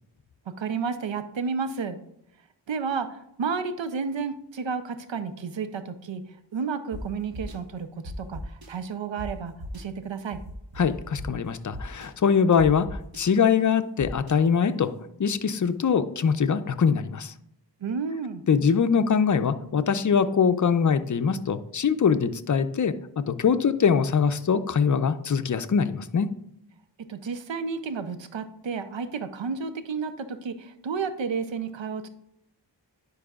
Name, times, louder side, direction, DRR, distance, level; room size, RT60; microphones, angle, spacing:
voice 1, 0.6-2.0 2.7-10.4 17.8-18.4 27.1-32.1, right 5 dB, 85° right, 10 dB, 0.6 m, -31 dB
sound 1, 6.9-7.0 7.3-7.5 8.0-8.7 9.2-9.3 9.6-9.8 10.3-11.3 11.7-12.1 12.6-13.2 14.0-14.3, left 1 dB, 55° right, 1.1 m, -38 dB
voice 2, 10.8-14.9 15.2-17.3 18.5-26.3, left 6 dB, 45° left, 11 dB, 0.5 m, -23 dB
9.9 x 4.7 x 2.4 m, 0.76 s
wide cardioid pair, 45°, 44 cm